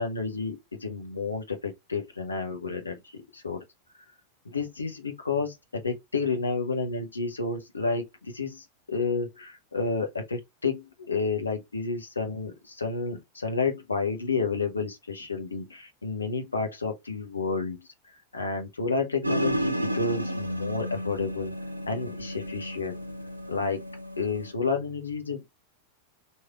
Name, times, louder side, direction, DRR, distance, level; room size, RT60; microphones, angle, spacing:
voice 1, 0.0-3.6 4.4-17.8 18.3-21.5 21.9-23.0 23.5-23.8 24.2-25.4, left 4 dB, 75° left, 0.8 m, -30 dB
sound 1, 19.2-24.5, equal, 85° right, 0.5 m, -32 dB
3.2 x 2.7 x 3.4 m
figure-of-eight pair, 90°, 0 cm